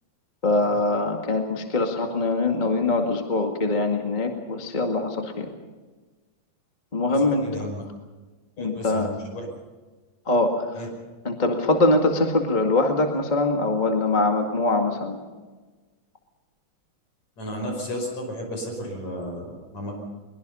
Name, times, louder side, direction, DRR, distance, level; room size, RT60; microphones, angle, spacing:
voice 1, 0.4-5.5 6.9-7.4 8.6-9.1 10.2-10.7 11.2-15.2, left 2 dB, 20° left, 3 dB, 1.3 m, -23 dB
voice 2, 7.1-7.8 8.6-9.5 10.7-10.9 17.4-19.9, equal, 50° left, 2 dB, 6.8 m, -33 dB
22.5 x 22.0 x 5.6 m, 1.3 s
omnidirectional pair, 4.0 m